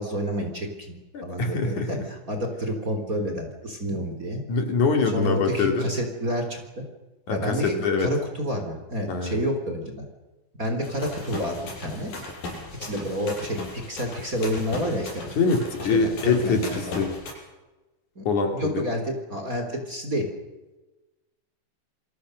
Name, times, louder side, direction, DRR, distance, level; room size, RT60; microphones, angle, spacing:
voice 1, 0.0-1.0 1.2-4.4 5.1-6.8 7.3-10.1 10.6-12.1 12.8-15.2 15.9-17.0 18.2-18.3 18.5-20.3, equal, 25° right, 4 dB, 3.5 m, -29 dB
voice 2, 1.1-2.1 4.5-5.9 7.3-8.1 9.1-9.4 15.4-17.1 18.3-18.8, left 4 dB, 55° left, 4 dB, 4.2 m, -24 dB
sound 1, 10.8-17.3, left 2 dB, 80° left, 7.6 m, -38 dB
29.0 x 23.0 x 6.5 m, 1.1 s
omnidirectional pair, 4.1 m